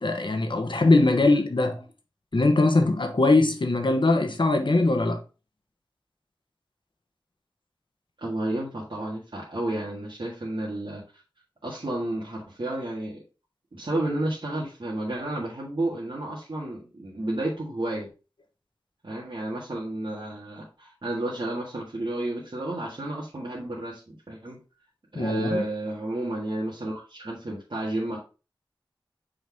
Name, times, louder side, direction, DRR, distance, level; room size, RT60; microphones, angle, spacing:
voice 1, 0.0-1.8 2.3-5.2 25.1-25.6, left 2 dB, 70° left, 1.1 m, -21 dB
voice 2, 8.2-11.0 11.6-13.2 13.7-18.1 19.0-24.6 25.1-28.2, right 1 dB, 70° right, 1.7 m, -31 dB
6.8 x 4.0 x 3.5 m
wide cardioid pair, 45°, 9 cm